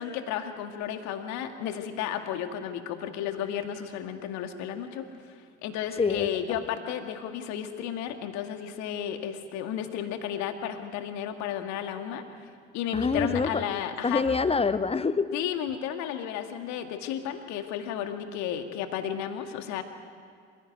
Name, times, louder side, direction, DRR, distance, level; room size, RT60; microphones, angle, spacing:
voice 1, 0.0-5.1 5.6-12.5 12.7-14.2 15.3-19.8, left 9 dB, 55° left, 7 dB, 2.1 m, -33 dB
voice 2, 6.0-6.6 12.9-13.6 14.0-15.4, left 4 dB, 15° left, 14 dB, 1.0 m, -26 dB
27.5 x 16.5 x 9.3 m, 2.1 s
figure-of-eight pair, 60°, 33 cm